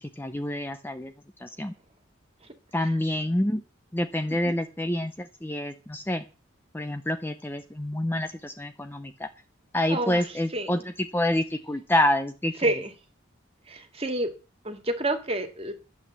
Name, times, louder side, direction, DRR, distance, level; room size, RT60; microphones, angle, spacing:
voice 1, 0.0-1.1 1.4-1.7 2.7-3.6 3.9-6.2 6.7-9.3 9.7-10.8 11.1-12.5, left 1 dB, 10° left, 7 dB, 0.7 m, -27 dB
voice 2, 9.9-10.8 12.6-12.9 13.7-14.3 14.6-15.7, right 1 dB, 30° right, 6 dB, 2.0 m, -29 dB
12.0 x 8.1 x 7.5 m, 0.34 s
head